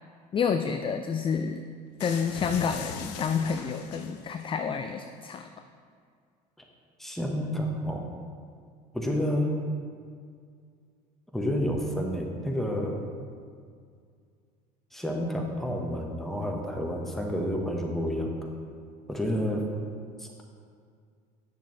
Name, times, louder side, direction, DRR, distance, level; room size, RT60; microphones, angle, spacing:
voice 1, 0.3-1.6 2.0-5.5, left 6 dB, 25° left, 7 dB, 0.4 m, -29 dB
sound 1, 2.0-4.5, left 6 dB, 80° left, 0.6 m, -40 dB
voice 2, 7.0-8.1 8.9-9.5 11.3-13.0 14.9-18.3 19.1-19.6 20.2-20.3, equal, ahead, 0 dB, 1.2 m, -29 dB
8.5 x 6.6 x 3.3 m, 2.2 s
hypercardioid pair, 75°, 21 cm